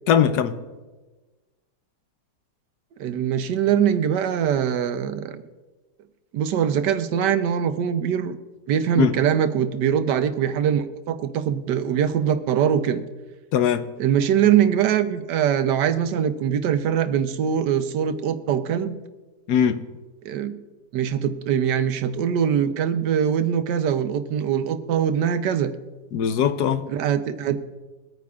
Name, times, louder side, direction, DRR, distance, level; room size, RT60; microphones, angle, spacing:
voice 1, 0.1-0.6 9.0-9.1 13.5-13.9 19.5-19.8 26.1-26.9, left 8 dB, 75° left, 1.2 m, -20 dB
voice 2, 3.0-5.4 6.3-8.4 8.7-13.0 14.0-19.0 20.2-20.5 20.9-25.7 26.9-27.6, right 8 dB, 80° right, 1.3 m, -22 dB
22.5 x 9.2 x 2.4 m
omnidirectional pair, 1.8 m